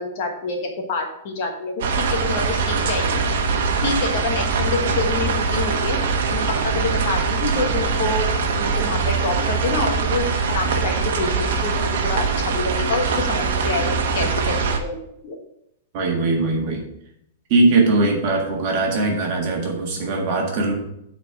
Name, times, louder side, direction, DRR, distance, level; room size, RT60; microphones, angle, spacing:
voice 1, 0.0-3.1 3.8-6.0 6.3-6.4 6.8-8.3 8.5-11.3 11.6-11.7 12.0-15.0 15.2-15.4, left 3 dB, 35° left, 2 dB, 1.3 m, -27 dB
sound 1, 1.8-14.8, right 4 dB, 60° right, 1.1 m, -22 dB
voice 2, 15.9-16.8 17.5-20.7, right 3 dB, 35° right, 0 dB, 1.6 m, -20 dB
8.5 x 4.3 x 5.8 m, 0.77 s
supercardioid pair, 180°, 0 cm